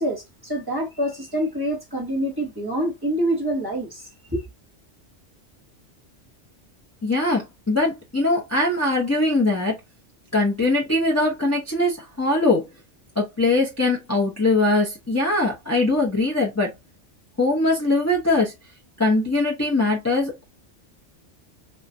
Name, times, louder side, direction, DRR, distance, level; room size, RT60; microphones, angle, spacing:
voice 1, 0.0-4.4, right 1 dB, 20° right, 1.2 m, -26 dB
voice 2, 7.0-9.7 10.3-12.7 13.2-16.7 17.4-18.5 19.0-20.4, left 2 dB, 15° left, 0.8 m, -21 dB
3.7 x 2.4 x 2.6 m
omnidirectional pair, 1.2 m